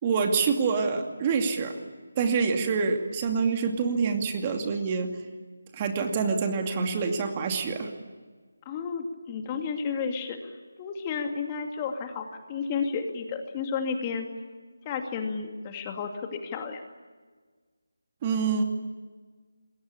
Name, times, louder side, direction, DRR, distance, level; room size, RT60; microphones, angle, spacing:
voice 1, 0.0-1.8 2.2-5.1 5.7-7.9 18.2-18.6, right 5 dB, 25° right, 4 dB, 2.5 m, -26 dB
voice 2, 8.7-10.4 10.8-14.3 14.8-16.8, left 5 dB, 20° left, 4 dB, 2.4 m, -32 dB
27.5 x 21.5 x 8.6 m, 1.4 s
figure-of-eight pair, 160°, 0 cm